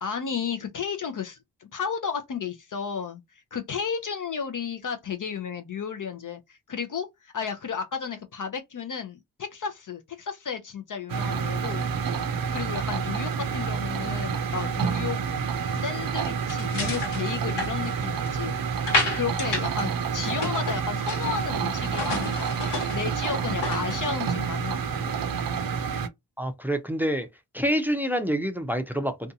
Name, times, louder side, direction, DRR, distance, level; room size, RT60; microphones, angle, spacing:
voice 1, 0.0-12.1 12.5-15.2 15.7-18.5 19.1-25.1, left 6 dB, 50° left, 0.5 m, -33 dB
sound 1, 11.1-26.1, right 6 dB, 55° right, 0.5 m, -28 dB
sound 2, 16.5-18.4 18.9-19.8 20.1-21.4 21.8-24.0, left 3 dB, 75° left, 1.2 m, -31 dB
voice 2, 26.4-27.3 27.5-29.3, equal, 5° right, 0.5 m, -27 dB
2.6 x 2.3 x 2.7 m
cardioid pair, 55°, 41 cm